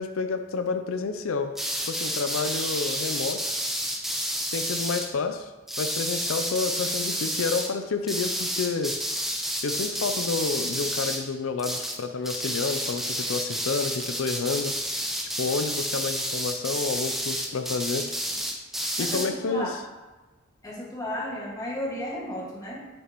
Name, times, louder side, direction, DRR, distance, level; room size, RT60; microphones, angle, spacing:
voice 1, 0.0-1.5 1.9-3.4 4.5-5.5 5.8-8.9 9.6-14.7 15.4-18.1 19.0-19.8, left 4 dB, 75° left, 7 dB, 0.5 m, -29 dB
sound 1, 1.5-5.1 5.7-7.7 8.1-11.3 11.6-12.0 12.2-19.3, equal, ahead, 0.8 m, -30 dB
voice 2, 19.0-19.7 20.6-22.8, left 1 dB, 15° left, -4 dB, 1.8 m, -33 dB
8.7 x 7.2 x 3.0 m, 1.2 s
head